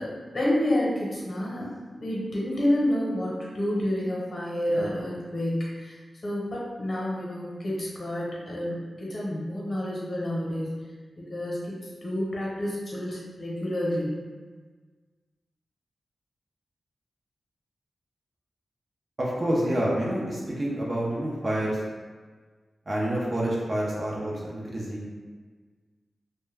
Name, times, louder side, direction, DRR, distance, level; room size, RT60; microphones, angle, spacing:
voice 1, 0.0-1.7 2.0-10.7 11.2-11.7 12.0-14.1, left 1 dB, 50° left, -5 dB, 0.9 m, -29 dB
voice 2, 19.2-21.8 22.9-25.1, right 1 dB, 45° right, -5 dB, 0.5 m, -28 dB
2.3 x 2.1 x 3.2 m, 1.4 s
cardioid pair, 70°, 0 cm